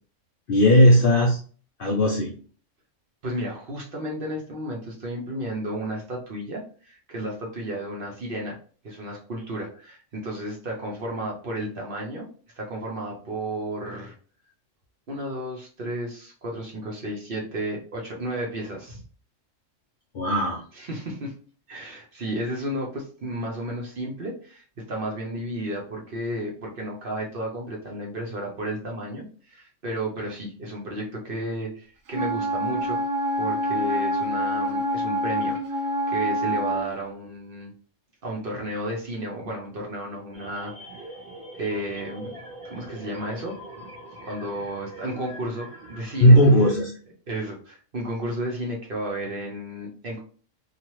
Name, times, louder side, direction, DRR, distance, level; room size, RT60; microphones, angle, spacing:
voice 1, 0.5-1.4 1.8-2.4 20.1-20.6 46.2-46.9, equal, 60° left, 0 dB, 0.6 m, -17 dB
voice 2, 3.2-8.6 8.8-12.3 12.6-14.1 15.1-19.0 20.7-21.4 21.7-33.0 33.4-37.7 38.2-40.7 41.5-42.3 42.7-43.6 44.2-46.4 47.3-50.2, right 1 dB, 50° right, -1 dB, 0.8 m, -33 dB
Wind instrument woodwind instrument, 32.1-36.9, equal, 90° right, 1.1 m, -26 dB
sound 1, 40.3-46.8, right 1 dB, 30° right, 1.0 m, -43 dB
2.9 x 2.3 x 3.0 m, 0.42 s
omnidirectional pair, 1.3 m